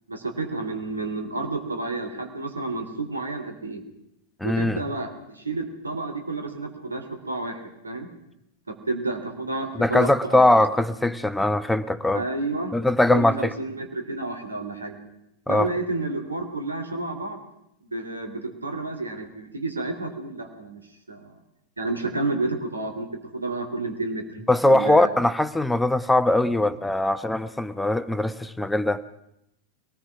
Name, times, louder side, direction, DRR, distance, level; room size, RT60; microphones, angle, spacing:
voice 1, 0.1-3.8 4.4-8.1 8.7-10.6 12.1-12.7 13.1-15.0 15.5-17.4 17.8-20.8 21.1-21.4 21.8-23.1 23.3-24.2 24.6-25.1, right 2 dB, 75° right, 6 dB, 3.0 m, -30 dB
voice 2, 4.4-4.8 9.8-12.2 12.7-13.5 15.5-15.7 24.5-29.0, left 1 dB, 5° left, 12 dB, 1.0 m, -21 dB
23.0 x 19.5 x 5.9 m, 0.80 s
figure-of-eight pair, 90°, 0 cm